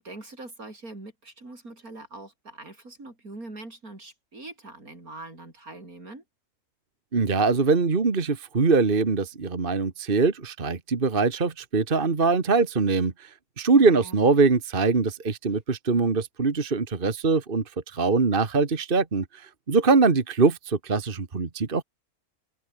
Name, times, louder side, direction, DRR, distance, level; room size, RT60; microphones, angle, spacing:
voice 1, 0.0-6.2 13.7-14.2, right 2 dB, 75° right, 6.5 m, -43 dB
voice 2, 7.1-13.3 13.6-17.6 17.9-21.8, right 4 dB, 35° right, 1.8 m, -23 dB
open air
omnidirectional pair, 1.5 m